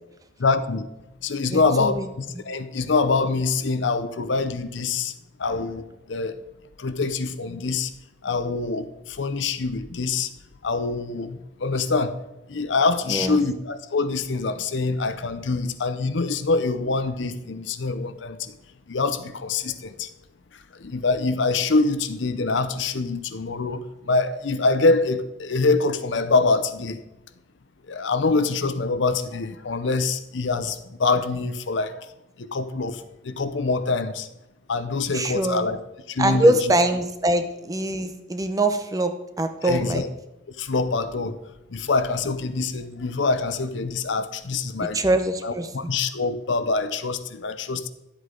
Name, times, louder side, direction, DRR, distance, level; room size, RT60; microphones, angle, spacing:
voice 1, 0.4-0.9 1.2-5.1 5.4-6.4 6.8-7.9 8.2-10.3 10.6-12.2 12.5-18.5 18.9-20.1 20.8-27.0 27.9-31.9 32.4-34.3 34.7-35.8 36.1-36.7 39.6-40.1 40.6-41.4 41.7-45.0 45.4-47.9, left 3 dB, 70° left, 11 dB, 0.7 m, -25 dB
voice 2, 1.5-2.1 2.3-2.4 13.1-13.4 35.1-35.7 36.2-40.0 44.8-46.0, right 1 dB, 20° right, 8 dB, 0.7 m, -23 dB
11.5 x 8.1 x 3.8 m, 0.93 s
head